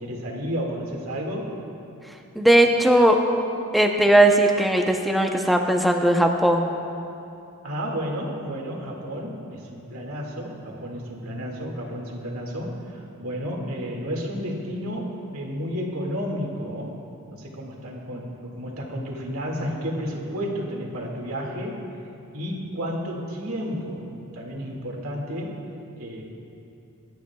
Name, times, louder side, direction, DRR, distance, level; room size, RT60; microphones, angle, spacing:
voice 1, 0.0-1.5 7.6-16.9 17.3-21.8 22.3-24.0 24.3-25.6 26.0-26.2, equal, 70° right, -1 dB, 2.1 m, -31 dB
voice 2, 2.3-3.2 3.7-6.7, right 1 dB, ahead, 2 dB, 0.7 m, -18 dB
23.0 x 11.5 x 2.3 m, 2.7 s
head